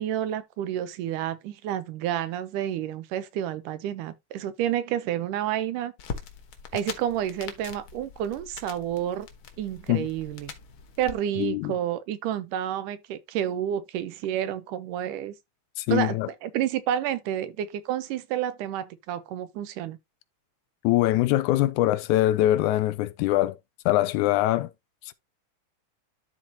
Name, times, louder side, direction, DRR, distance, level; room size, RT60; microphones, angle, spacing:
voice 1, 0.0-5.9 6.7-9.3 9.6-10.5 11.0-15.3 15.9-20.0, right 11 dB, 90° right, 2.4 m, -30 dB
sound 1, 6.0-11.1, left 6 dB, 55° left, 1.5 m, -42 dB
voice 2, 11.4-11.7 15.8-16.3 20.8-23.6 23.9-24.7, left 15 dB, 80° left, 1.9 m, -23 dB
12.5 x 4.2 x 2.8 m
omnidirectional pair, 3.6 m